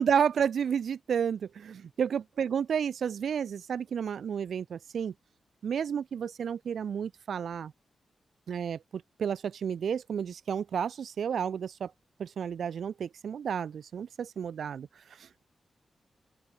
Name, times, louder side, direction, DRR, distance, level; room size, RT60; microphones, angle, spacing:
voice 1, 0.0-5.1 5.6-7.7 8.5-11.9 12.2-14.9 15.2-15.4, right 7 dB, 75° right, 6.8 m, -31 dB
open air
supercardioid pair, 40°, 0 cm